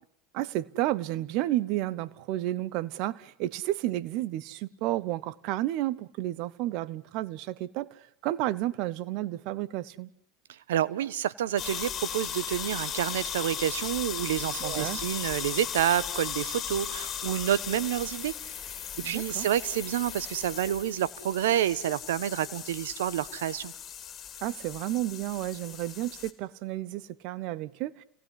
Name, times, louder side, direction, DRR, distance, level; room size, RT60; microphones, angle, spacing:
voice 1, 0.3-10.1 14.6-15.0 19.0-19.5 24.4-28.0, right 15 dB, 60° right, 1.0 m, -31 dB
voice 2, 10.7-18.3 19.0-23.7, right 11 dB, 75° right, 1.2 m, -29 dB
sound 1, 11.6-26.3, left 9 dB, 35° left, 3.8 m, -37 dB
29.5 x 19.0 x 10.0 m
hypercardioid pair, 85°, 0 cm